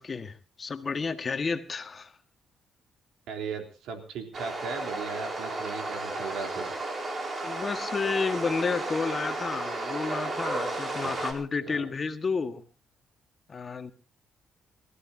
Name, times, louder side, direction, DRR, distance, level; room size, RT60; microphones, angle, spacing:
voice 1, 0.0-2.1 7.4-12.6 13.5-13.9, left 4 dB, 35° left, 1.7 m, -31 dB
voice 2, 3.3-6.7 11.0-11.1 11.6-11.9, right 5 dB, 80° right, 3.6 m, -37 dB
sound 1, 4.3-11.3, right 2 dB, 35° right, 4.3 m, -33 dB
29.0 x 14.5 x 2.8 m
cardioid pair, 90°, 0 cm